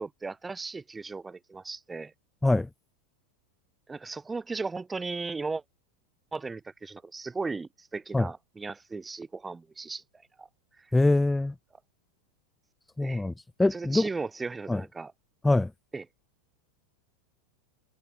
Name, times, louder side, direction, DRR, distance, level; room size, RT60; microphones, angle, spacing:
voice 1, 0.0-2.1 3.9-5.6 6.3-10.0 10.4-10.5 10.8-10.9 13.0-13.3 13.7-15.1 15.9-16.0, right 4 dB, 10° right, 7.7 m, -36 dB
voice 2, 10.9-11.5 13.0-13.3 13.6-14.1 14.7-14.8 15.4-15.7, left 2 dB, 5° left, 4.8 m, -23 dB
supercardioid pair, 130°, 0 cm